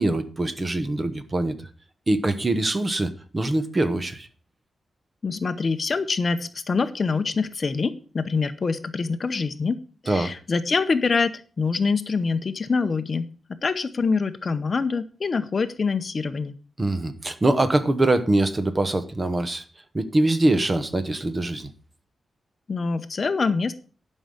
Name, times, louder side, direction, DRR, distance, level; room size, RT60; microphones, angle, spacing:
voice 1, 0.0-1.5 2.1-4.3 10.1-10.3 16.8-19.6 19.9-21.7, right 2 dB, 25° right, 10 dB, 1.1 m, -23 dB
voice 2, 5.2-9.8 10.0-13.3 13.6-16.6 22.7-23.7, left 4 dB, 40° left, 11 dB, 0.7 m, -25 dB
11.5 x 5.5 x 6.4 m, 0.38 s
wide cardioid pair, 145°, 0 cm